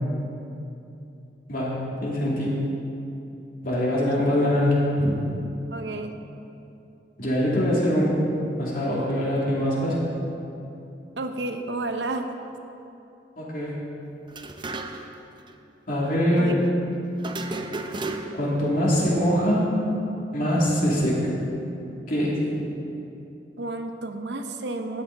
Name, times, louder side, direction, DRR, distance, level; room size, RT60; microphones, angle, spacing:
voice 1, 1.5-2.6 3.6-5.2 7.2-8.2 8.6-10.0 13.4-13.7 15.9-16.6 18.3-19.7 20.3-21.3 22.1-22.4, equal, 55° left, -5 dB, 2.6 m, -23 dB
voice 2, 5.7-6.1 11.2-12.3 16.4-16.5 23.6-25.0, right 2 dB, 75° right, 6 dB, 0.8 m, -31 dB
sound 1, 14.3-15.2 15.5-15.6 17.2-18.6, right 2 dB, 25° right, 0.6 m, -33 dB
12.5 x 9.8 x 4.0 m, 2.8 s
head